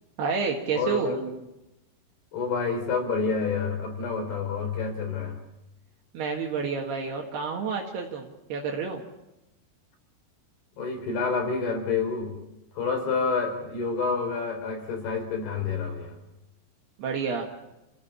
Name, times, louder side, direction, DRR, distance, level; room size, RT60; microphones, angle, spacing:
voice 1, 0.2-1.2 6.1-9.1 17.0-17.5, right 5 dB, 70° right, 0 dB, 3.8 m, -29 dB
voice 2, 0.7-1.3 2.3-5.4 10.8-12.4 12.7-16.2, left 4 dB, 65° left, 4 dB, 5.9 m, -28 dB
30.0 x 16.0 x 7.3 m, 0.95 s
omnidirectional pair, 5.1 m